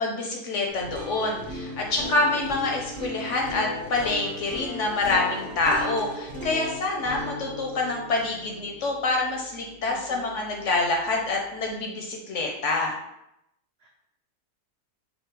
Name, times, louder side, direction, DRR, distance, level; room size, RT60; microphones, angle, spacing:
voice 1, 0.0-13.0, left 2 dB, 65° left, 1 dB, 0.8 m, -26 dB
sound 1, 0.7-10.7, left 1 dB, 35° right, 1.0 m, -37 dB
voice 2, 7.0-7.5 9.9-10.4 13.8-13.9, right 6 dB, 75° right, 0 dB, 0.5 m, -48 dB
5.3 x 2.1 x 4.5 m, 0.84 s
omnidirectional pair, 1.7 m